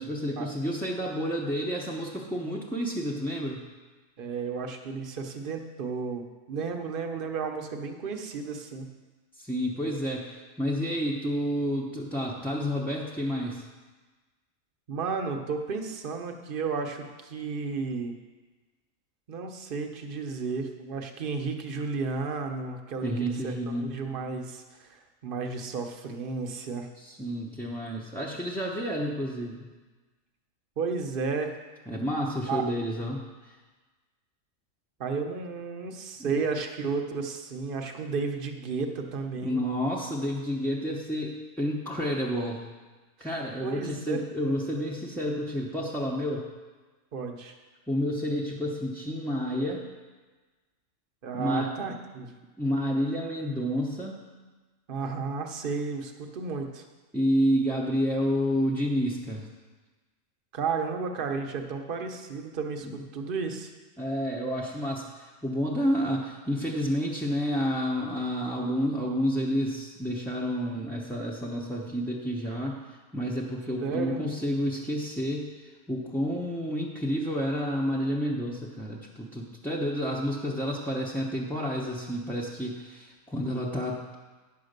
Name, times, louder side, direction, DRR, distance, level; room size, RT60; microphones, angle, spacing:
voice 1, 0.0-3.6 9.4-13.6 23.0-23.9 27.0-29.7 31.9-33.6 36.2-36.4 39.4-42.6 43.2-46.5 47.9-49.9 51.3-51.7 52.6-54.2 57.1-59.5 62.8-63.0 64.0-72.8 73.1-75.5 75.9-84.0, equal, ahead, -5 dB, 0.6 m, -30 dB
voice 2, 4.2-8.9 14.9-18.1 19.3-26.9 30.8-31.6 32.5-32.6 35.0-39.6 43.6-44.2 47.1-47.5 51.2-52.3 54.9-56.8 60.5-63.7 73.8-74.2, right 5 dB, 45° right, 4 dB, 0.9 m, -33 dB
9.9 x 5.8 x 6.6 m, 1.3 s
omnidirectional pair, 1.4 m